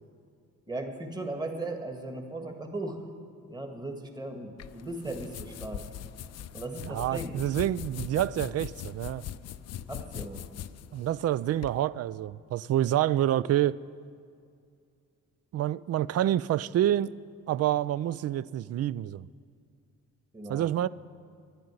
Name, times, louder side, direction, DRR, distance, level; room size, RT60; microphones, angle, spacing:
voice 1, 0.7-3.1 3.5-5.8 6.5-7.3 9.9-10.4 20.3-20.7, right 2 dB, 15° right, 1.8 m, -37 dB
sound 1, 4.6-11.8, left 10 dB, 60° left, 0.5 m, -41 dB
voice 2, 6.8-9.2 10.9-13.8 15.5-17.1 17.5-19.3 20.5-20.9, right 12 dB, 55° right, 0.4 m, -27 dB
11.5 x 10.5 x 9.6 m
cardioid pair, 90°, 30 cm